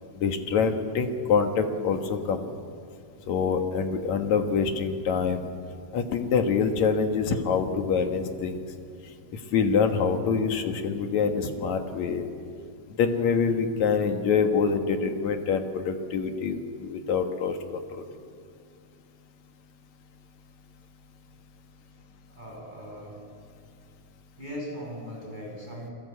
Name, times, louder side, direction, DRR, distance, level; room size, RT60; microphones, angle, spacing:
voice 1, 0.2-2.4 3.3-5.4 5.9-8.6 9.5-12.2 13.0-17.8, left 5 dB, 55° left, 6 dB, 2.2 m, -25 dB
voice 2, 22.3-23.2 24.4-25.9, equal, 10° right, -2 dB, 7.6 m, -39 dB
29.0 x 22.0 x 8.4 m, 2.3 s
omnidirectional pair, 5.0 m